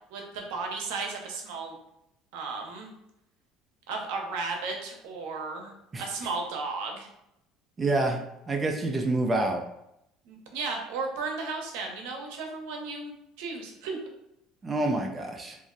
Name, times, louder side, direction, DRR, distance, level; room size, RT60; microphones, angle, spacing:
voice 1, 0.1-1.8 2.3-2.9 3.9-5.7 6.0-7.1 10.3-14.0, right 4 dB, 85° right, 1 dB, 0.7 m, -34 dB
voice 2, 7.8-8.2 8.5-9.6 14.6-15.6, right 2 dB, 20° right, 2 dB, 0.4 m, -27 dB
2.5 x 2.0 x 3.7 m, 0.81 s
cardioid pair, 110°, 0 cm